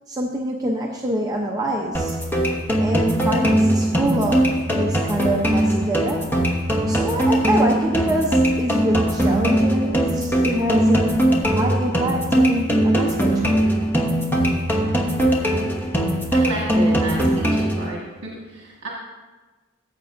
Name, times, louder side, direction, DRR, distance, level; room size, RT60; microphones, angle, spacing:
voice 1, 0.1-2.2 2.8-6.3 6.9-13.6, right 1 dB, 15° right, -1 dB, 0.6 m, -25 dB
sound 1, 1.9-17.9, right 1 dB, 10° left, 0.9 m, -20 dB
voice 2, 16.3-18.9, right 1 dB, 60° right, -4 dB, 1.6 m, -31 dB
14.0 x 7.8 x 2.6 m, 1.3 s
head